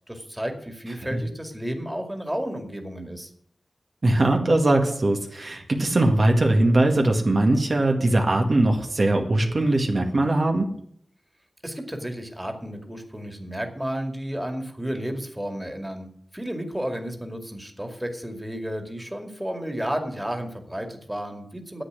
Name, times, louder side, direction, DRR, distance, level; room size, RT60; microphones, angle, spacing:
voice 1, 0.1-3.3 11.6-16.1 16.3-21.8, equal, 10° right, 5 dB, 2.4 m, -32 dB
voice 2, 4.0-10.7, right 2 dB, 50° right, 2 dB, 1.9 m, -21 dB
10.0 x 8.1 x 8.2 m, 0.64 s
cardioid pair, 50°, 0 cm